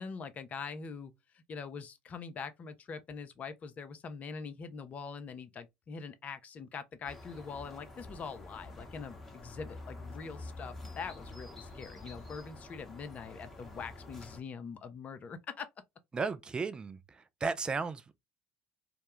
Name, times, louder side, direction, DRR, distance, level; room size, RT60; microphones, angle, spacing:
voice 1, 0.0-15.7, left 5 dB, 35° left, 0.5 m, -43 dB
sound 1, 7.0-14.4, left 2 dB, 5° left, 1.0 m, -48 dB
voice 2, 16.1-17.0 17.4-18.2, right 4 dB, 20° right, 0.4 m, -34 dB
2.2 x 2.1 x 2.9 m
hypercardioid pair, 70°, 4 cm